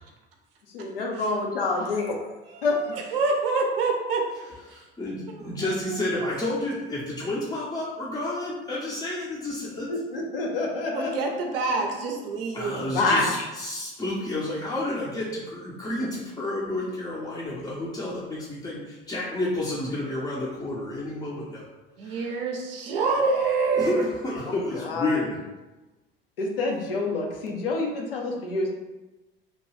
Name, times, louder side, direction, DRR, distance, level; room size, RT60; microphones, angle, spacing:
voice 1, 0.7-2.3 2.6-2.8 9.9-11.1 12.9-13.5 24.5-25.2 26.4-28.7, left 3 dB, 75° left, 0 dB, 0.6 m, -27 dB
voice 2, 2.5-4.2 4.7-4.8 5.4-6.3 10.9-12.8 22.0-24.0, right 4 dB, 75° right, 1 dB, 0.5 m, -27 dB
voice 3, 4.7-9.9 12.5-21.7 22.0-22.4 23.7-25.4, left 2 dB, 15° left, -6 dB, 0.5 m, -30 dB
2.8 x 2.2 x 3.1 m, 1.1 s
figure-of-eight pair, 60°, 29 cm